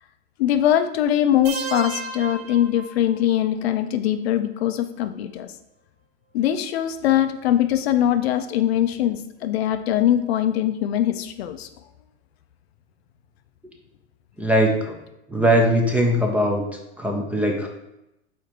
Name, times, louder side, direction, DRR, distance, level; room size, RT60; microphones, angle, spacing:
voice 1, 0.4-5.5 6.3-11.7, left 11 dB, 60° left, 9 dB, 0.6 m, -22 dB
sound 1, 1.4-3.4, right 4 dB, 60° right, 0.9 m, -33 dB
voice 2, 14.4-15.0 15.3-16.7 17.0-17.7, equal, 5° right, 1 dB, 0.8 m, -20 dB
4.9 x 4.5 x 4.5 m, 0.88 s
hypercardioid pair, 115°, 35 cm